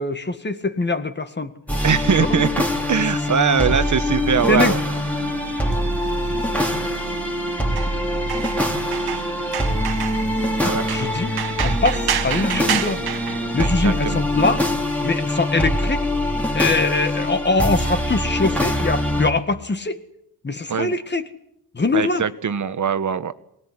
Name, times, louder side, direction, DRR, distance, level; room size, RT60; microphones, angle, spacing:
voice 1, 0.0-1.5 2.1-2.3 4.5-4.8 10.6-11.3 11.6-13.0 13.5-14.7 15.0-16.1 16.5-20.0 20.4-21.3 21.7-22.2, left 3 dB, 30° left, 10 dB, 1.9 m, -22 dB
sound 1, 1.7-19.3, left 1 dB, 5° left, 3.4 m, -23 dB
voice 2, 1.8-2.5 2.9-4.8 10.6-10.8 13.6-14.3 20.7-20.9 21.9-23.3, right 7 dB, 50° right, 12 dB, 1.3 m, -21 dB
sound 2, 4.1-14.2, right 9 dB, 90° right, 1.6 m, -31 dB
23.5 x 19.0 x 9.9 m, 0.77 s
wide cardioid pair, 110°, 37 cm